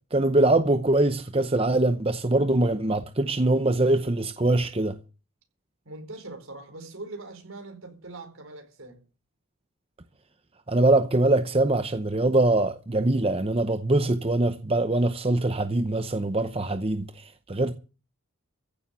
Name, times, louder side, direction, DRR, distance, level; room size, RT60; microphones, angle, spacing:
voice 1, 0.1-5.0 10.7-17.7, right 2 dB, 25° right, 0.7 m, -23 dB
voice 2, 5.8-9.0, right 2 dB, 70° right, 4.4 m, -42 dB
15.0 x 7.1 x 8.3 m
head